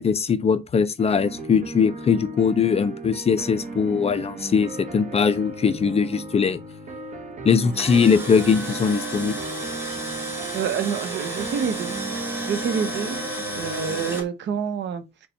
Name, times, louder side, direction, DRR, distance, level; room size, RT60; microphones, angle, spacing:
voice 1, 0.0-6.6 7.4-9.4, left 6 dB, 30° left, 0.4 m, -21 dB
sound 1, 1.0-14.2, right 2 dB, 40° right, 0.9 m, -36 dB
Tools, 7.5-14.2, right 2 dB, 10° right, 1.4 m, -32 dB
voice 2, 10.5-11.9 12.3-15.0, right 7 dB, 65° right, 0.6 m, -28 dB
4.1 x 2.2 x 3.9 m
cardioid pair, 90°, 20 cm